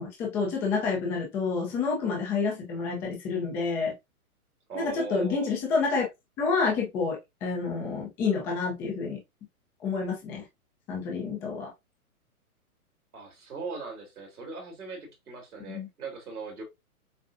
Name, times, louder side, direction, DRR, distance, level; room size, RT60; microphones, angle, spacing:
voice 1, 0.0-3.9 4.7-6.1 6.4-9.2 9.8-10.4 10.9-11.7 15.7-15.9, left 4 dB, 5° left, 0.4 m, -29 dB
voice 2, 4.7-5.6 13.1-16.6, right 4 dB, 80° right, 3.1 m, -39 dB
7.3 x 2.5 x 2.5 m
hypercardioid pair, 135°, 44 cm